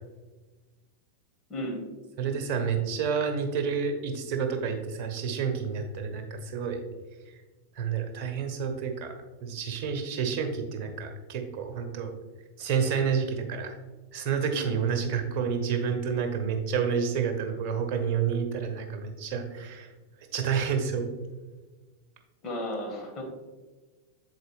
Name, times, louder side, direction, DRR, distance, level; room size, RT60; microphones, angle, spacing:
voice 1, 1.5-1.8 14.5-14.8 15.2-15.4 22.4-23.2, left 1 dB, 30° left, 0 dB, 1.8 m, -34 dB
voice 2, 2.2-6.8 7.8-9.1 9.4-12.1 12.6-13.8 14.1-19.9 20.3-21.1, right 6 dB, 45° right, 4 dB, 0.9 m, -29 dB
7.0 x 4.3 x 3.4 m, 1.3 s
figure-of-eight pair, 90°, 0 cm